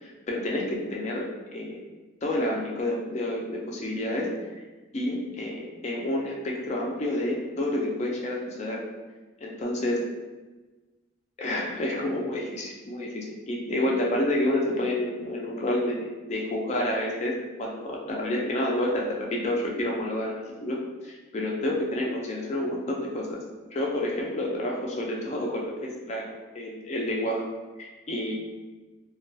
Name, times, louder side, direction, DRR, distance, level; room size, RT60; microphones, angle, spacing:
voice 1, 0.0-1.8 2.2-4.3 4.9-8.8 9.4-10.1 11.4-17.3 17.6-20.8 21.0-23.4 23.7-27.4 27.8-28.3, left 1 dB, 35° left, -2 dB, 0.3 m, -29 dB
2.2 x 2.2 x 2.6 m, 1.2 s
head